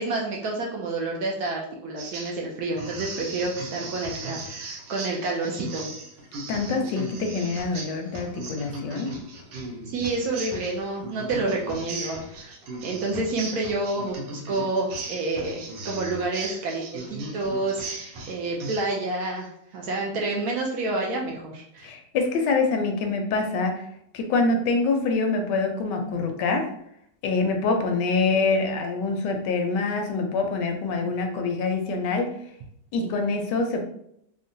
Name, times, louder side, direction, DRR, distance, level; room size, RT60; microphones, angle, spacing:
voice 1, 0.0-5.9 9.9-12.5 12.8-21.9, right 2 dB, 70° right, -2 dB, 1.0 m, -29 dB
sound 1, 2.0-2.4 2.8-18.8, right 2 dB, 90° right, 1.4 m, -37 dB
voice 2, 6.5-9.1 21.8-23.9 24.1-26.7 27.2-32.3 32.9-33.8, left 3 dB, 80° left, 4 dB, 1.2 m, -25 dB
3.7 x 2.1 x 2.6 m, 0.72 s
omnidirectional pair, 1.9 m